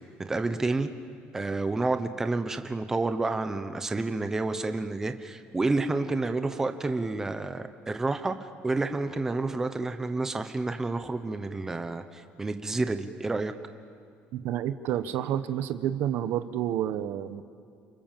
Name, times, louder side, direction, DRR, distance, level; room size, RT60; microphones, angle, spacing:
voice 1, 0.2-0.9 1.3-13.5, right 3 dB, 10° right, 8 dB, 1.0 m, -29 dB
voice 2, 14.3-17.4, right 11 dB, 60° right, 11 dB, 1.1 m, -29 dB
29.5 x 26.5 x 7.5 m, 2.3 s
cardioid pair, 170°, 4 cm